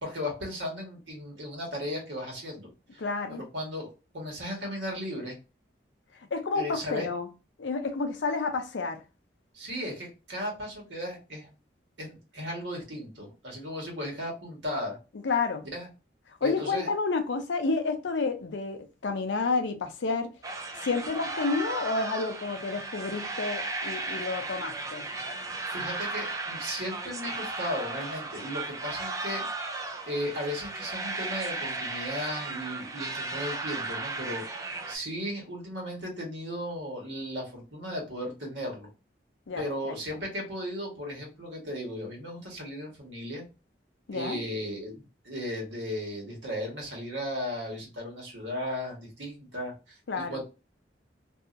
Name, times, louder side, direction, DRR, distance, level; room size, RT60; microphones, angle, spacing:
voice 1, 0.0-3.0 3.3-5.4 6.5-7.1 9.5-11.5 12.0-15.0 15.7-15.9 16.4-16.9 25.7-38.9 39.6-43.4 44.1-50.4, equal, 85° right, 1.3 m, -36 dB
voice 2, 3.0-3.4 6.3-7.3 7.6-9.0 15.2-15.6 16.4-20.3 20.8-25.1 39.5-39.9 44.1-44.4 50.1-50.4, left 4 dB, 90° left, 0.5 m, -30 dB
sound 1, 20.4-35.0, right 3 dB, 20° right, 0.3 m, -35 dB
2.7 x 2.4 x 2.4 m
head